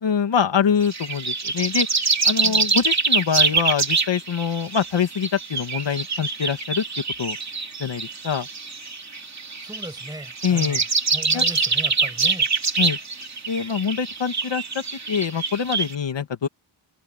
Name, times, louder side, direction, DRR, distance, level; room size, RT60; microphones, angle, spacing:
voice 1, 0.0-1.9 2.2-6.8 7.2-7.4 7.8-8.5 10.4-10.8 11.3-11.4 12.8-13.0 13.5-16.5, left 7 dB, 60° left, 2.2 m, -24 dB
sound 1, 0.8-15.9, right 4 dB, 35° right, 2.8 m, -25 dB
voice 2, 9.4-10.9 11.1-12.5, right 1 dB, 10° right, 6.5 m, -38 dB
wide cardioid pair, 155°, 48 cm